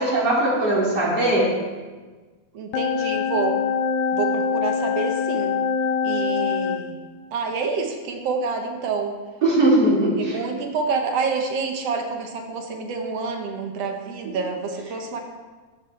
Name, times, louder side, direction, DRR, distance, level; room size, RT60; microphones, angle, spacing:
voice 1, 0.0-1.5 9.4-10.4, right 1 dB, 35° right, -5 dB, 3.3 m, -19 dB
voice 2, 2.5-3.6 4.1-5.6 6.0-7.0 7.3-9.1 10.2-15.2, right 4 dB, 65° right, 3 dB, 2.1 m, -27 dB
sound 1, 2.7-6.8, left 6 dB, 80° left, 2.0 m, -24 dB
15.0 x 11.0 x 3.3 m, 1.3 s
omnidirectional pair, 3.3 m